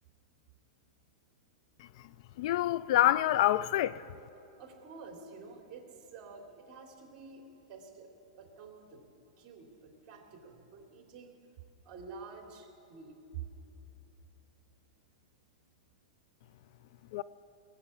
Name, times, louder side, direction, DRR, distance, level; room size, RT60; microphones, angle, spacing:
voice 1, 2.4-4.0 17.1-17.2, left 13 dB, 55° left, 0.4 m, -26 dB
voice 2, 4.6-11.4 11.8-13.2, right 4 dB, 35° right, 3.0 m, -50 dB
20.0 x 7.0 x 8.3 m
hypercardioid pair, 140°, 4 cm